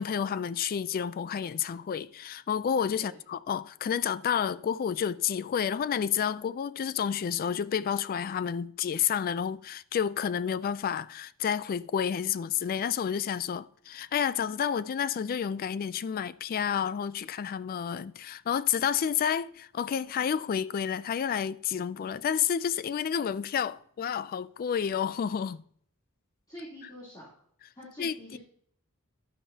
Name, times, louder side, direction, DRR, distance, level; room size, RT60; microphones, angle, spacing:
voice 1, 0.0-25.6 28.0-28.4, left 8 dB, 40° left, 0.3 m, -30 dB
voice 2, 26.5-27.3 27.7-28.4, equal, 20° left, 3.2 m, -46 dB
12.0 x 10.0 x 2.8 m
head